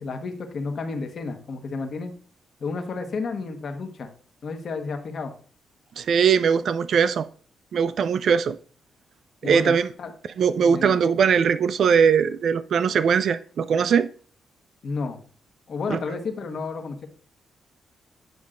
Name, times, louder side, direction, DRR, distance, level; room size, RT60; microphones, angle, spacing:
voice 1, 0.0-2.1 2.6-4.1 4.4-5.3 9.4-10.1 10.6-11.0 14.8-15.2 15.7-17.1, left 4 dB, 60° left, 1.3 m, -31 dB
voice 2, 6.0-7.3 7.7-8.6 9.4-9.9 10.4-14.1 15.9-16.0, right 6 dB, 70° right, 0.3 m, -20 dB
9.4 x 5.2 x 2.5 m
cardioid pair, 70°, 0 cm